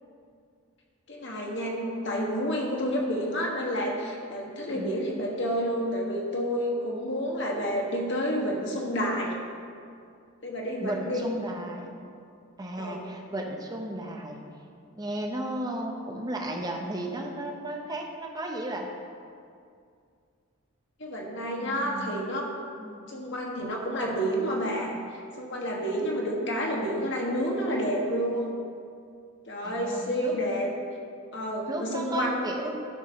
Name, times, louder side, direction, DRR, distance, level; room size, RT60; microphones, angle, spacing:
voice 1, 1.1-9.3 10.4-11.3 12.8-13.0 21.0-22.5 23.1-28.6 29.5-30.7 31.3-32.5, equal, 50° left, -2 dB, 1.4 m, -29 dB
voice 2, 4.6-4.9 10.8-11.9 12.6-14.4 14.9-18.9 21.6-22.2 22.8-23.0 29.6-30.3 31.7-32.8, right 1 dB, 15° right, 1 dB, 0.8 m, -34 dB
12.0 x 4.7 x 5.6 m, 2.3 s
head